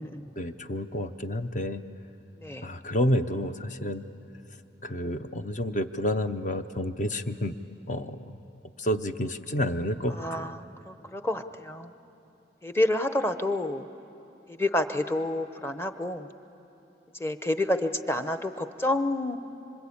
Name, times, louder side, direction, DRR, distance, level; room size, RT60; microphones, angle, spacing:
voice 1, 0.4-1.8 2.6-4.0 4.8-7.5 7.9-8.4 8.8-10.5, left 1 dB, 45° left, 9 dB, 0.7 m, -29 dB
voice 2, 2.4-2.7 10.2-11.9 12.6-13.9 14.5-16.3 17.2-19.4, left 1 dB, 15° left, 9 dB, 0.8 m, -29 dB
26.0 x 25.5 x 8.6 m, 2.9 s
head